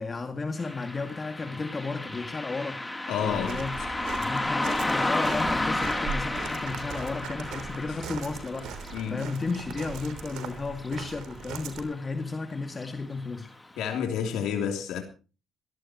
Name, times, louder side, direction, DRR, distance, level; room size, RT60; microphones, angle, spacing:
voice 1, 0.0-2.8 3.2-3.8 4.2-13.5, left 3 dB, 30° left, 2.2 m, -33 dB
Car passing by, 0.6-11.4 11.7-11.8 12.7-12.9 13.4-13.5 14.0-14.1, left 2 dB, 15° left, 3.2 m, -32 dB
voice 2, 3.1-3.9 7.9-8.0 8.9-9.2 13.8-15.0, left 8 dB, 85° left, 3.1 m, -30 dB
Walk footsteps, 3.2-11.8, right 6 dB, 90° right, 3.3 m, -40 dB
22.5 x 16.5 x 3.0 m
cardioid pair, 90°, 0 cm